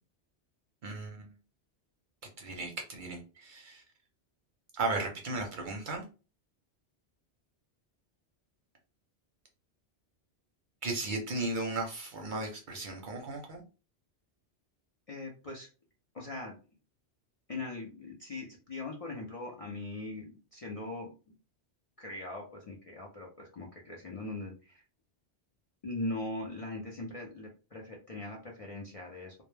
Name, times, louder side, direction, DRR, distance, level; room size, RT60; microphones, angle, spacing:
voice 1, 0.8-1.3 2.4-3.8 4.7-6.0 10.8-13.6, right 2 dB, 55° right, 2 dB, 0.6 m, -35 dB
voice 2, 15.1-15.7 16.1-16.6 17.5-21.1 22.0-24.8 25.8-29.4, left 2 dB, 50° left, -1 dB, 0.4 m, -40 dB
2.1 x 2.1 x 3.1 m, 0.34 s
omnidirectional pair, 1.1 m